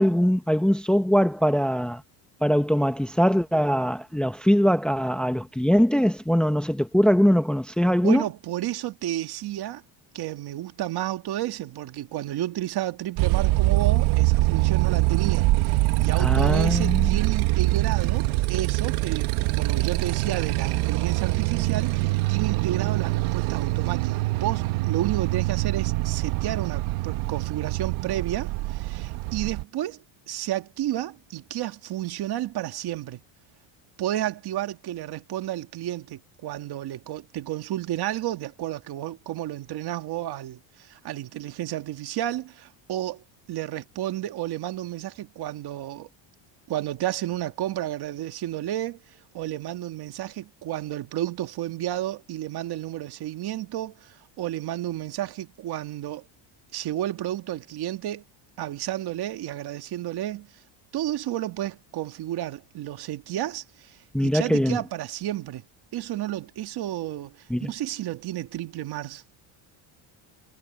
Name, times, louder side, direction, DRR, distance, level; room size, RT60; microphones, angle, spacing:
voice 1, 0.0-2.0 2.4-8.2 16.2-17.1 64.1-64.8 67.5-67.7, equal, ahead, 1.1 m, -22 dB
voice 2, 8.0-9.8 10.1-33.2 34.0-43.2 43.5-46.1 46.7-49.0 49.3-56.3 56.7-58.2 58.6-60.5 60.9-65.6 65.9-69.2, right 13 dB, 50° right, 1.9 m, -31 dB
Motorcycle, 13.2-29.6, right 19 dB, 75° right, 1.5 m, -24 dB
cardioid pair, 145°, 50 cm